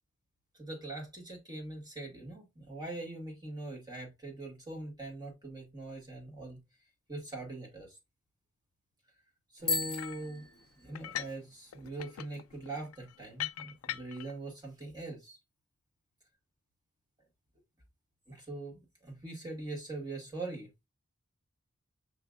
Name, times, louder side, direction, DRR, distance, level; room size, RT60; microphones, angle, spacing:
voice 1, 0.5-6.6 7.1-8.0 9.5-10.5 10.8-15.4 18.3-20.7, right 2 dB, 20° right, 1.9 m, -42 dB
Bicycle bell, 9.6-11.3, left 3 dB, 5° left, 1.4 m, -36 dB
sound 1, 10.0-10.3 10.9-11.4 11.7-14.3, left 13 dB, 75° left, 0.3 m, -41 dB
5.6 x 3.8 x 2.5 m
head